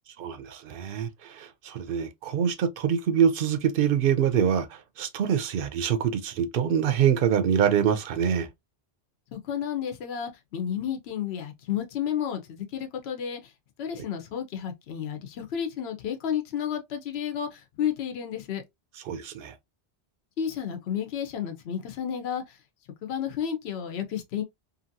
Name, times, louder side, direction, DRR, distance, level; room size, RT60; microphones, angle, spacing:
voice 1, 0.2-8.5 19.1-19.5, right 8 dB, 65° right, 0.7 m, -25 dB
voice 2, 9.3-13.5 13.8-18.6 20.4-22.6 23.0-24.4, left 9 dB, 75° left, 0.9 m, -31 dB
2.8 x 2.6 x 2.6 m
omnidirectional pair, 1.1 m